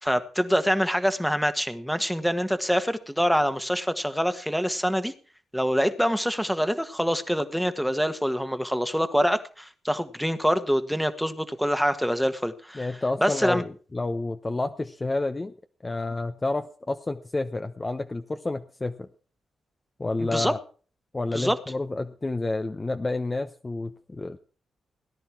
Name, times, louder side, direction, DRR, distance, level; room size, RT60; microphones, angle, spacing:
voice 1, 0.0-5.1 5.5-12.9 13.2-13.6 20.3-20.5 21.3-21.6, equal, ahead, 10 dB, 1.5 m, -25 dB
voice 2, 12.7-15.5 15.8-19.1 20.0-20.6 21.1-24.4, left 2 dB, 25° left, 6 dB, 0.9 m, -29 dB
18.0 x 10.5 x 4.6 m, 0.40 s
cardioid pair, 85°, 0 cm